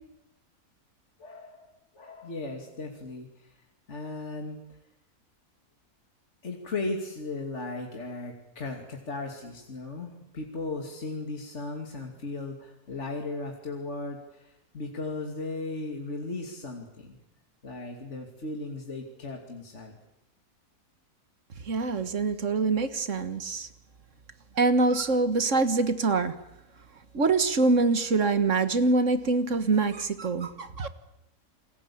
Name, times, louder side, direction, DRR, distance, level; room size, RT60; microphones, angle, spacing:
voice 1, 1.2-1.7 1.9-3.6 3.9-4.6 6.4-17.2 17.6-20.0, left 2 dB, 50° left, 2 dB, 3.0 m, -36 dB
voice 2, 21.7-23.7 24.6-26.3 27.1-30.9, right 3 dB, 55° right, 11 dB, 1.8 m, -24 dB
29.0 x 21.0 x 8.6 m, 0.89 s
omnidirectional pair, 1.6 m